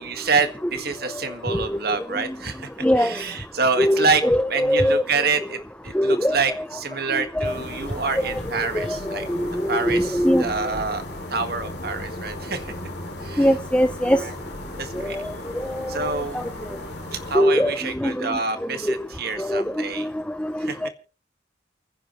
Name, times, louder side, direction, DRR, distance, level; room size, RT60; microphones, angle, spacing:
voice 1, 0.0-2.7 3.0-4.2 4.5-5.6 5.8-9.3 9.7-11.0 11.3-12.7 13.2-13.5 14.1-14.4 14.8-15.2 15.9-16.4 17.1-20.1 20.6-20.8, right 4 dB, 55° right, 8 dB, 1.8 m, -27 dB
voice 2, 2.8-3.1 3.8-5.0 5.9-6.4 7.4-7.5 8.6-10.5 13.4-14.2 15.0-15.2 16.0-16.1 16.3-16.4 17.3-17.7 18.0-18.4 19.4-19.6 20.4-20.5 20.8-20.9, equal, 5° left, 10 dB, 0.6 m, -21 dB
sound 1, 7.4-17.4, left 1 dB, 60° left, 2.8 m, -36 dB
29.0 x 10.0 x 3.2 m, 0.40 s
head